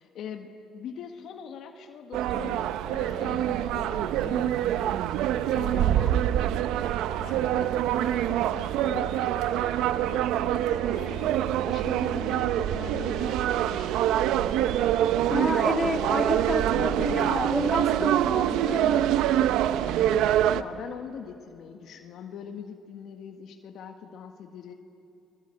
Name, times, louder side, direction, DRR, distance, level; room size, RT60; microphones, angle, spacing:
voice 1, 0.0-6.0 7.1-14.7 19.6-24.7, left 7 dB, 65° left, 4 dB, 1.7 m, -42 dB
sound 1, 2.1-20.6, right 11 dB, 75° right, 0.8 m, -25 dB
voice 2, 5.8-6.2 15.3-19.1, left 2 dB, 15° left, 1 dB, 3.5 m, -30 dB
29.0 x 21.0 x 7.8 m, 2.6 s
supercardioid pair, 80°, 0 cm